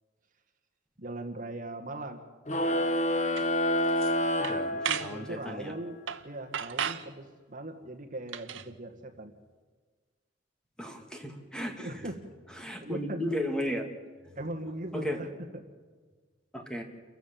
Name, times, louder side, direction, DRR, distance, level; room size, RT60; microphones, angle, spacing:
voice 1, 1.0-2.3 4.7-6.0 6.2-9.3 11.8-12.2 12.8-13.3 14.4-15.6, right 1 dB, 45° right, 4 dB, 1.9 m, -39 dB
sound 1, 2.5-5.4, left 1 dB, 40° left, 1.5 m, -28 dB
sound 2, 3.4-3.5 3.9-4.1 4.4-5.1 6.1-6.3 6.5-7.1 8.3-8.7, right 8 dB, 85° right, 0.9 m, -34 dB
voice 2, 4.5-5.7 10.8-12.0 12.6-13.9 14.9-15.2 16.5-16.8, equal, 5° left, 4 dB, 2.3 m, -35 dB
28.5 x 15.0 x 7.6 m, 1.4 s
head